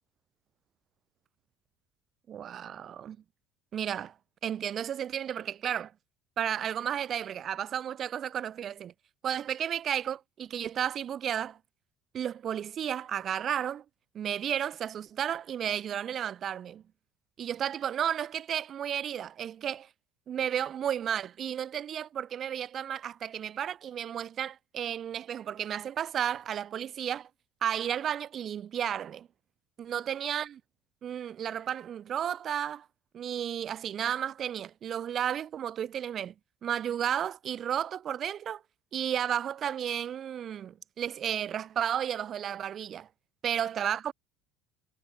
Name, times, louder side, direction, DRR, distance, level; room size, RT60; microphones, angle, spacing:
voice 1, 2.3-3.2 3.7-4.1 4.4-5.9 6.4-8.9 9.2-11.6 12.1-13.8 14.1-16.8 17.4-19.9 20.3-27.3 27.6-29.3 29.8-30.6 31.0-32.8 33.1-36.3 36.6-38.6 38.9-43.1 43.4-44.1, right 9 dB, 40° right, 1.6 m, -33 dB
figure-of-eight pair, 65°, 0 cm